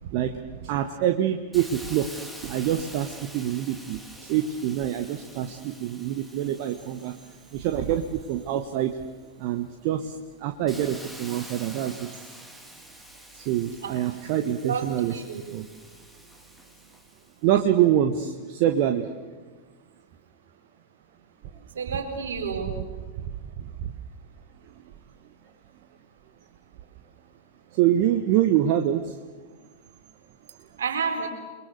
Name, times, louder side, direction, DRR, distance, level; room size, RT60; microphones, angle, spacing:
voice 1, 0.6-7.1 7.5-9.0 9.4-12.1 13.3-15.1 15.5-15.6 17.4-19.1 23.6-23.9 27.7-29.2, right 11 dB, 45° right, 6 dB, 1.4 m, -25 dB
Hiss, 1.5-9.1 9.6-17.4, equal, ahead, 3.0 m, -47 dB
voice 2, 15.1-15.4 21.7-22.8 30.8-31.3, right 5 dB, 65° right, 4 dB, 4.3 m, -30 dB
29.0 x 22.5 x 6.7 m, 1.3 s
figure-of-eight pair, 95°, 0 cm